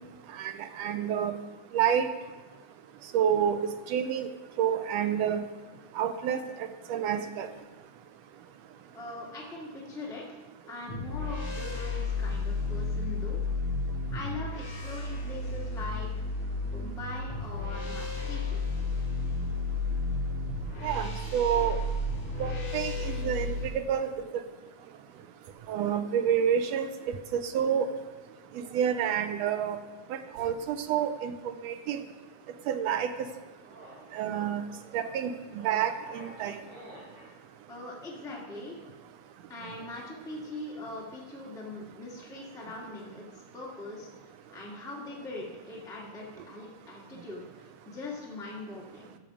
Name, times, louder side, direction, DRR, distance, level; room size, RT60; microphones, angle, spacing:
voice 1, 0.8-1.4 1.7-2.1 3.1-3.6 3.9-4.3 4.6-5.4 6.0-6.4 6.9-7.5 20.8-21.8 22.4-24.1 25.7-26.9 27.3-27.9 28.7-29.8 30.4-31.3 31.6-32.0 32.7-33.1 34.1-34.6 34.9-35.3 35.6-36.6, right 9 dB, 75° right, 8 dB, 1.7 m, -28 dB
voice 2, 8.9-13.4 14.1-16.1 16.7-18.6 37.7-38.8 39.5-44.1 44.5-49.2, left 2 dB, ahead, -4 dB, 1.4 m, -41 dB
sound 1, 10.9-23.7, left 2 dB, 85° left, 4.0 m, -32 dB
sound 2, 33.2-37.3, right 1 dB, 50° right, 3.6 m, -51 dB
14.0 x 6.4 x 4.9 m, 1.3 s
omnidirectional pair, 3.3 m